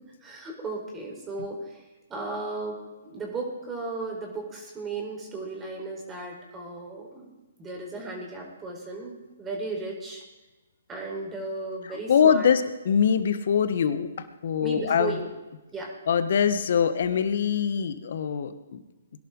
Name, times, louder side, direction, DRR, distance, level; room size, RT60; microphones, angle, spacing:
voice 1, 0.2-1.8 2.1-2.8 3.0-7.3 7.6-10.2 10.9-12.5 14.6-15.3 15.7-15.9, right 3 dB, 15° right, 0 dB, 4.2 m, -35 dB
voice 2, 11.9-15.2 16.1-18.8, left 7 dB, 60° left, 11 dB, 1.3 m, -23 dB
21.5 x 11.5 x 3.9 m, 1.1 s
hypercardioid pair, 135°, 0 cm